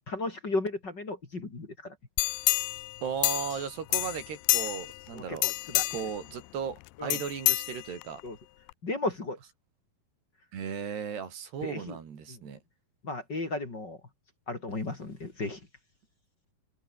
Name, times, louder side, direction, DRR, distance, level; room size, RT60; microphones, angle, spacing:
voice 1, 0.1-1.9 5.1-5.8 7.0-7.2 8.2-8.4 8.8-9.4 11.6-12.0 12.3-12.4 13.0-14.0 14.5-15.6, left 2 dB, 30° left, 3.7 m, -34 dB
sound 1, 2.2-3.7 3.9-5.0 5.4-6.2 7.1-8.2 8.7-8.8, left 23 dB, 80° left, 2.3 m, -28 dB
voice 2, 3.0-5.5 5.9-8.2 10.5-12.6, right 7 dB, 90° right, 6.2 m, -36 dB
omnidirectional pair, 4.6 m